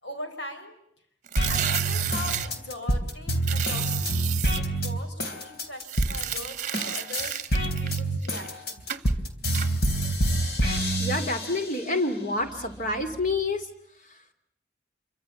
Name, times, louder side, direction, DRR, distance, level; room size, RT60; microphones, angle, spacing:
voice 1, 0.0-0.7 1.5-4.2 4.5-7.5 7.8-8.9, left 1 dB, 85° left, 6 dB, 5.0 m, -40 dB
sound 1, 1.3-2.5 3.4-4.6 5.8-8.5 8.9-9.1 9.5-9.7, right 11 dB, 40° right, 1.0 m, -32 dB
sound 2, 1.4-6.4 6.7-11.9 12.4-13.4, right 1 dB, 60° left, 3.4 m, -27 dB
voice 2, 11.0-13.7 14.0-14.3, left 2 dB, 45° left, 7 dB, 2.8 m, -28 dB
27.0 x 25.0 x 7.2 m, 0.71 s
head